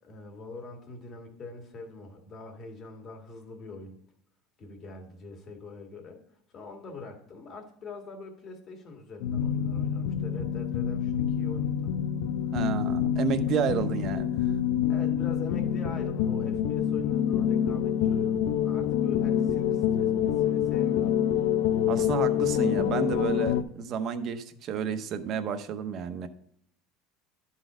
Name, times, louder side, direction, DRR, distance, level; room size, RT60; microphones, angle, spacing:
voice 1, 0.0-4.0 4.6-6.2 6.5-12.0 14.9-21.2, left 3 dB, 30° left, 3 dB, 1.9 m, -43 dB
sound 1, 9.2-23.6, left 9 dB, 75° left, 0.6 m, -27 dB
voice 2, 12.5-14.5 21.9-26.3, right 7 dB, 40° right, 9 dB, 0.8 m, -31 dB
12.0 x 4.1 x 4.9 m, 0.68 s
cardioid pair, 160°, 0 cm